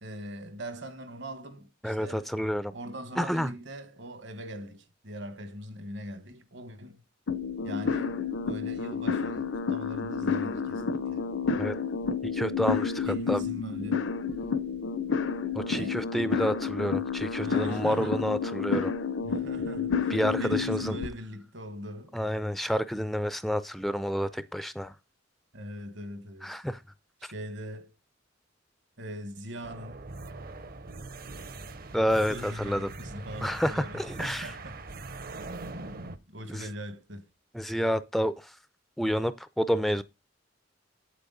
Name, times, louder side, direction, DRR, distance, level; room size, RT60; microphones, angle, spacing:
voice 1, 0.0-2.3 2.7-7.0 7.6-11.2 13.0-14.2 15.7-16.1 17.4-18.2 19.2-22.2 25.5-26.6 27.2-27.9 29.0-30.0 32.3-34.8 35.4-37.2, equal, 65° right, 1.6 m, -41 dB
voice 2, 1.8-2.7 3.2-3.5 11.6-11.8 12.2-13.4 15.5-19.0 20.1-21.0 22.1-24.9 26.4-26.8 31.9-32.9 33.4-34.5 36.5-36.7 37.5-38.6 39.0-40.0, equal, ahead, 0.4 m, -29 dB
sound 1, 7.3-21.1, left 5 dB, 80° left, 0.8 m, -30 dB
sound 2, 29.6-36.2, right 3 dB, 50° right, 0.9 m, -42 dB
8.6 x 8.4 x 4.0 m
head